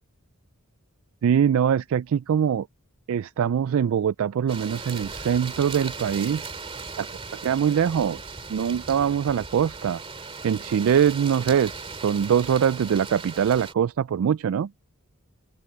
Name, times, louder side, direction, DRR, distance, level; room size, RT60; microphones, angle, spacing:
voice 1, 1.2-2.7 3.1-6.5 7.0-7.1 7.4-10.0 10.4-14.7, right 8 dB, 65° right, 0.3 m, -23 dB
sound 1, 4.5-13.7, right 4 dB, 25° right, 2.4 m, -38 dB
open air
head